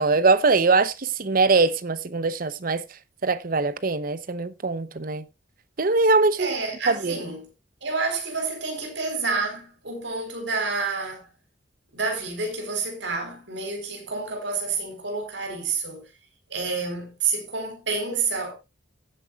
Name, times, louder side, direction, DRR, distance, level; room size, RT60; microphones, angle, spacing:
voice 1, 0.0-2.8 3.2-5.2 5.8-6.5 6.9-7.2, right 3 dB, 50° right, 0.8 m, -22 dB
voice 2, 6.4-7.5 7.8-11.3 11.9-16.0 16.5-18.5, right 4 dB, 75° right, 4.2 m, -29 dB
16.5 x 8.9 x 2.4 m
head